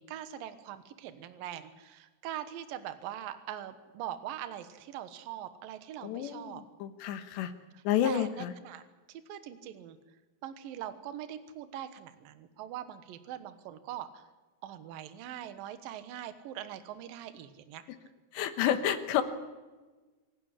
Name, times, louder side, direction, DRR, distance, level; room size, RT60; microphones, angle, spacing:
voice 1, 0.0-6.6 7.7-8.8 9.1-10.0 10.4-14.2 14.6-17.8, right 11 dB, 70° right, 10 dB, 2.2 m, -42 dB
voice 2, 6.0-7.5 7.8-8.5 18.3-19.2, left 10 dB, 70° left, 9 dB, 3.1 m, -30 dB
27.0 x 11.5 x 9.9 m, 1.3 s
omnidirectional pair, 5.8 m